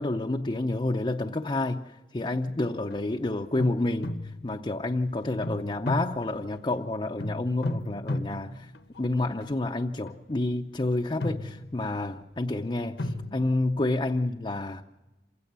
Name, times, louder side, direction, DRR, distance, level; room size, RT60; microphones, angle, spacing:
voice 1, 0.0-8.7 9.0-14.8, left 2 dB, 30° left, 0.6 m, -29 dB
sound 1, 2.5-3.0 3.6-4.8 5.4-6.8 7.2-9.5 10.1-10.4 11.0-12.1 13.0-13.3, left 1 dB, 75° left, 1.2 m, -34 dB
27.5 x 16.5 x 6.8 m
head